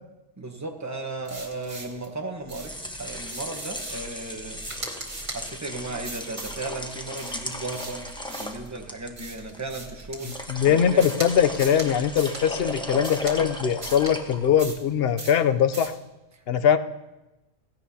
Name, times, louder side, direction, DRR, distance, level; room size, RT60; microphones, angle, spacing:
voice 1, 0.4-4.6 5.0-11.1, right 2 dB, 15° right, 3 dB, 1.0 m, -36 dB
sound 1, 1.2-2.1 2.5-2.8 3.2-4.1 4.6-5.4 6.0-6.6 7.1-8.7 9.2-10.5 11.0-11.3 11.5-11.9 12.2-12.4 13.0-13.4 13.8-14.1 14.6-14.9 15.2-15.4 15.7-16.0, right 2 dB, 55° right, 2.1 m, -39 dB
sound 2, 2.4-14.8, equal, 5° left, 0.9 m, -37 dB
voice 2, 10.5-15.9 16.5-16.8, left 8 dB, 60° left, 11 dB, 0.7 m, -21 dB
16.5 x 16.0 x 2.8 m, 1.0 s
omnidirectional pair, 1.4 m